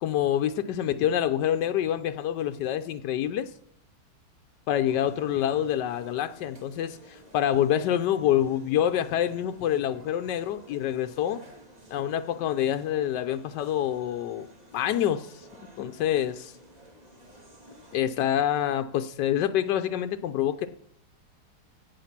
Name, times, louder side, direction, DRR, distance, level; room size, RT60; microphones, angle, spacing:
voice 1, 0.0-3.5 4.7-11.4 11.9-14.5 14.7-15.4 15.8-16.5 17.9-20.7, left 11 dB, 90° left, 9 dB, 1.3 m, -26 dB
sound 1, 4.9-18.0, equal, 25° right, 2.0 m, -53 dB
16.5 x 5.7 x 5.9 m, 0.67 s
omnidirectional pair, 1.8 m